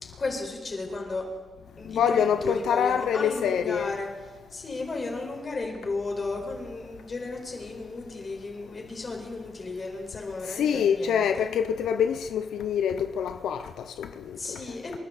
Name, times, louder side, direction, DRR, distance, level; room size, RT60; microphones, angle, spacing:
voice 1, 0.2-1.3 1.6-4.1 4.5-11.5 14.4-15.0, left 3 dB, 40° left, 4.9 m, -34 dB
voice 2, 1.9-3.9 10.5-14.6, left 8 dB, 90° left, 0.6 m, -26 dB
28.5 x 12.0 x 4.2 m
cardioid pair, 90°, 0 cm